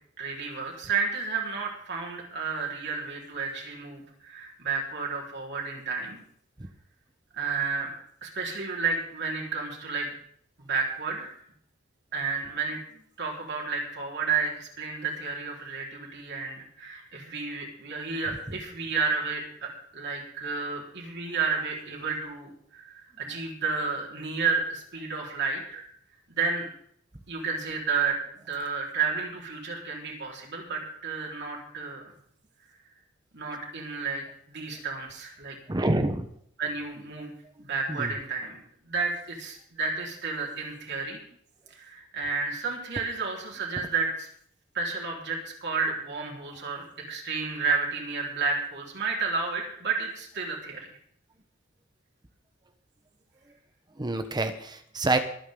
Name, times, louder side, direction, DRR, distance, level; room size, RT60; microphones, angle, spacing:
voice 1, 0.2-6.2 7.3-7.9 8.2-10.1 10.6-11.3 12.1-12.8 13.2-25.8 26.3-26.7 27.3-32.0 33.3-35.6 36.6-37.3 37.6-38.6 38.9-41.2 41.7-44.3 44.7-50.9, right 4 dB, 60° right, -1 dB, 4.2 m, -31 dB
voice 2, 35.7-36.3 38.0-38.1 54.0-55.2, right 2 dB, 20° right, 8 dB, 0.9 m, -26 dB
25.0 x 9.3 x 3.8 m, 0.64 s
head